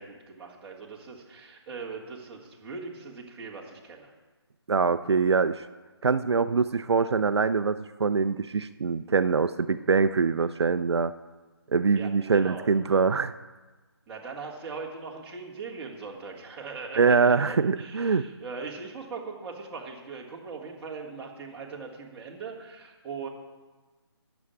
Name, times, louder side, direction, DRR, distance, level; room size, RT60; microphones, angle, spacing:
voice 1, 0.0-4.1 11.9-12.7 14.1-23.3, right 4 dB, 10° right, -6 dB, 1.8 m, -40 dB
voice 2, 4.7-5.6 6.0-11.1 11.7-13.3 17.0-18.2, right 5 dB, 75° right, 11 dB, 0.5 m, -24 dB
9.4 x 7.1 x 9.0 m, 1.3 s
figure-of-eight pair, 155°, 14 cm